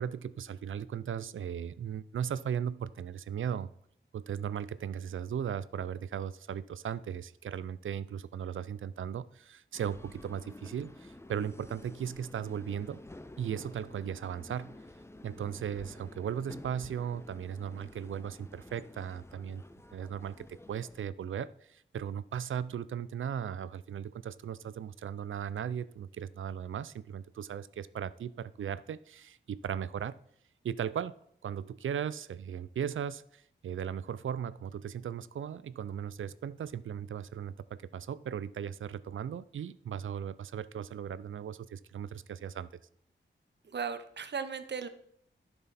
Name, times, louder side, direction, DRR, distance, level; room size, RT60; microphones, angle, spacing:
voice 1, 0.0-3.7 4.1-13.0 13.4-14.7 15.2-19.6 19.9-30.2 30.6-31.1 31.4-42.8, right 8 dB, 85° right, 17 dB, 0.4 m, -37 dB
sound 1, 9.7-21.0, left 2 dB, 15° left, 0.5 m, -51 dB
voice 2, 43.6-44.9, right 6 dB, 60° right, 11 dB, 0.8 m, -36 dB
11.0 x 6.1 x 4.2 m, 0.68 s
wide cardioid pair, 90°, 20 cm